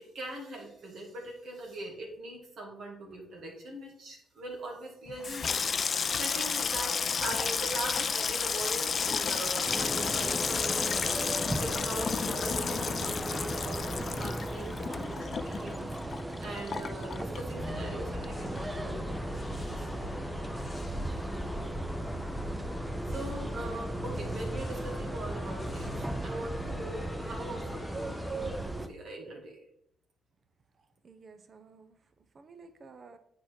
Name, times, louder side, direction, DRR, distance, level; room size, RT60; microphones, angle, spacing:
voice 1, 0.0-5.6 6.2-19.4 19.8-20.1 23.1-29.6, right 1 dB, 65° right, 0 dB, 2.1 m, -42 dB
Water tap faucet / Sink (filling or washing), 5.1-17.9 18.2-18.9 19.2-19.5, left 6 dB, 45° left, 0.4 m, -32 dB
sound 1, 9.7-28.9, right 1 dB, 15° right, 0.6 m, -37 dB
sound 2, 17.5-28.7, left 1 dB, 20° left, 1.4 m, -41 dB
voice 2, 30.8-32.0 32.3-33.2, right 4 dB, 45° right, 9 dB, 0.8 m, -53 dB
8.0 x 4.8 x 4.5 m, 0.72 s
cardioid pair, 90°, 0 cm